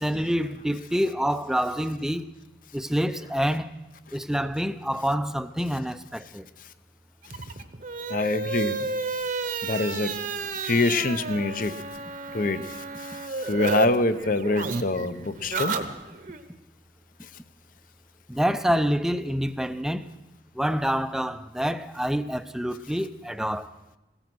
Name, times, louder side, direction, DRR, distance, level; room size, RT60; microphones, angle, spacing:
voice 1, 0.0-2.3 2.7-3.7 4.1-6.4 18.3-20.1 20.6-23.7, equal, 5° right, 0.5 m, -27 dB
sound 1, 7.2-13.9 14.1-16.4, right 3 dB, 50° right, 1.0 m, -31 dB
voice 2, 8.1-8.9 9.6-10.1 10.6-11.8 12.3-15.7, left 2 dB, 50° left, 0.7 m, -25 dB
16.0 x 14.5 x 6.1 m
head